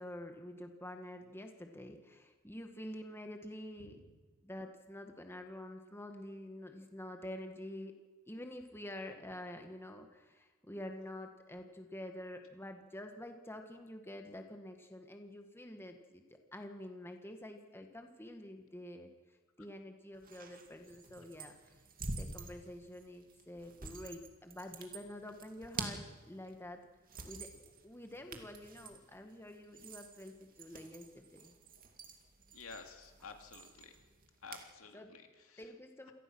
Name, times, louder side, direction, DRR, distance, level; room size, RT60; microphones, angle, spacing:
voice 1, 0.0-4.0 4.4-7.9 8.3-16.2 16.5-19.1 19.6-21.6 22.2-26.8 27.2-31.6 34.9-35.1 35.6-36.1, left 1 dB, 10° left, 5 dB, 1.6 m, -48 dB
voice 2, 3.8-4.1 32.5-34.0 34.4-35.7, left 4 dB, 75° left, 5 dB, 2.6 m, -52 dB
sound 1, 20.2-34.7, right 3 dB, 40° right, 2.4 m, -49 dB
27.0 x 18.5 x 6.2 m, 1.3 s
head